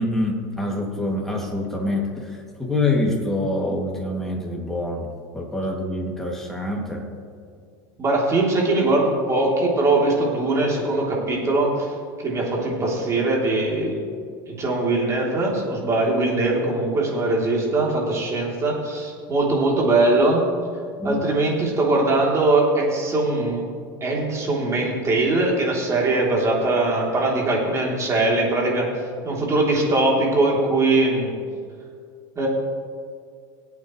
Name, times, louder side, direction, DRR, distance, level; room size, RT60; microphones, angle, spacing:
voice 1, 0.0-5.1 5.3-7.1 21.0-21.2, left 2 dB, 5° left, -2 dB, 2.6 m, -26 dB
voice 2, 8.0-11.9 12.2-14.0 14.5-20.4 21.0-23.6 24.0-28.9 29.2-31.3 32.3-32.5, right 2 dB, 30° right, -3 dB, 3.5 m, -21 dB
22.5 x 8.6 x 3.3 m, 2.1 s
supercardioid pair, 120°, 10 cm